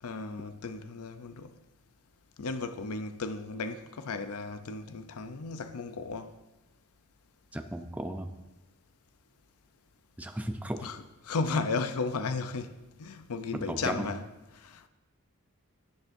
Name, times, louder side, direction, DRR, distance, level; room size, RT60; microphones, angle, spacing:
voice 1, 0.0-1.5 2.4-6.3 10.8-11.0 11.2-14.3 14.5-14.9, left 4 dB, 85° left, 0.6 m, -34 dB
voice 2, 7.5-8.3 10.2-10.9 13.5-14.1, right 1 dB, 5° right, 0.5 m, -35 dB
17.0 x 7.1 x 2.6 m
head